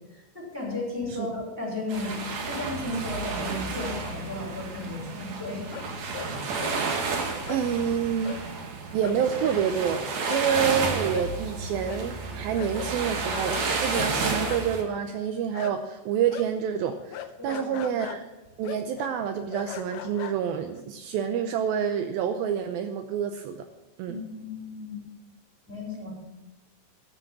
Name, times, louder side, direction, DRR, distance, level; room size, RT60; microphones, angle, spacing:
voice 1, 0.1-5.7 17.4-17.9 24.1-25.0 25.7-26.1, left 2 dB, 5° right, -2 dB, 5.2 m, -34 dB
sound 1, 1.9-14.8, right 4 dB, 55° right, 2.1 m, -31 dB
sound 2, 5.7-6.3 6.6-6.8 7.5-7.6 8.2-8.4 8.7-8.8 9.0-16.0 16.3-20.8, left 11 dB, 80° left, 2.3 m, -40 dB
voice 2, 6.7-8.4 8.9-10.0 10.3-18.3 18.6-23.6 24.0-24.2, right 8 dB, 85° right, 6 dB, 2.1 m, -28 dB
12.5 x 7.7 x 7.3 m, 1.0 s
omnidirectional pair, 5.1 m